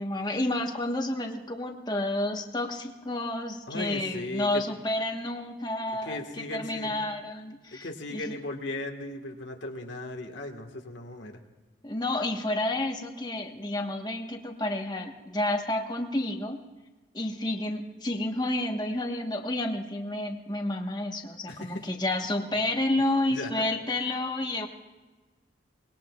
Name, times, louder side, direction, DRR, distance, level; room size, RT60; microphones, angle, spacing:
voice 1, 0.0-8.4 11.8-16.6 17.1-24.7, left 1 dB, 20° left, 3 dB, 1.2 m, -30 dB
voice 2, 3.7-4.6 6.0-6.9 7.7-11.4 21.5-21.9 23.3-23.7, left 2 dB, 75° left, 3 dB, 1.6 m, -37 dB
24.5 x 20.5 x 2.4 m, 1.2 s
head